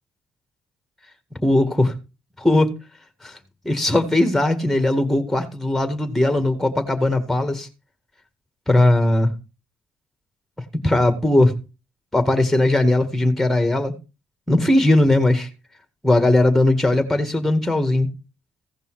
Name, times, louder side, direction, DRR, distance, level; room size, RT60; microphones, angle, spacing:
voice 1, 1.4-1.9 2.4-2.7 3.2-3.4 3.6-7.7 8.7-9.3 10.8-11.6 12.1-14.0 14.5-15.5 16.0-18.1, left 1 dB, 5° left, 8 dB, 1.9 m, -18 dB
15.5 x 5.4 x 4.8 m, 0.30 s
supercardioid pair, 75°, 3 cm